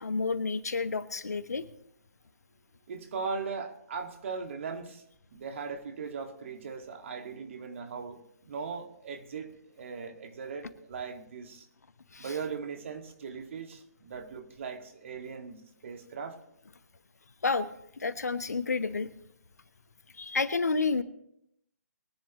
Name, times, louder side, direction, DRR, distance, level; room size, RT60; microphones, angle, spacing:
voice 1, 0.0-1.6 12.1-12.3 17.4-17.7 18.0-19.1 20.2-21.0, left 4 dB, 70° left, 12 dB, 1.1 m, -30 dB
voice 2, 2.9-5.0 5.3-11.7 12.2-16.4, right 5 dB, 50° right, 5 dB, 2.0 m, -39 dB
22.5 x 10.5 x 3.0 m, 0.76 s
figure-of-eight pair, 135°, 9 cm